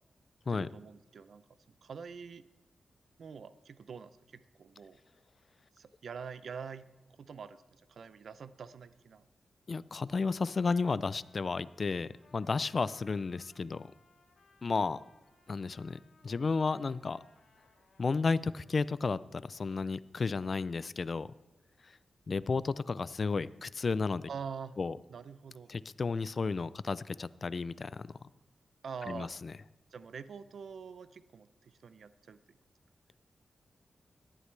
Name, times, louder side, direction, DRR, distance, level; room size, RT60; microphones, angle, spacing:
voice 1, 0.5-1.4 1.8-2.4 3.2-5.0 5.8-6.9 7.2-9.2 24.3-24.8 25.1-25.7 28.8-29.3 29.9-32.4, right 6 dB, 70° right, 14 dB, 0.5 m, -45 dB
voice 2, 9.7-13.9 14.6-15.0 15.5-17.2 18.0-21.3 21.8-21.9 22.3-24.3 24.8-25.0 25.7-28.2 29.1-29.5, left 4 dB, 45° left, 18 dB, 0.4 m, -33 dB
Trumpet, 10.5-19.0, left 4 dB, 65° left, 2.5 m, -66 dB
17.5 x 11.5 x 3.3 m, 1.1 s
wide cardioid pair, 120°, 0 cm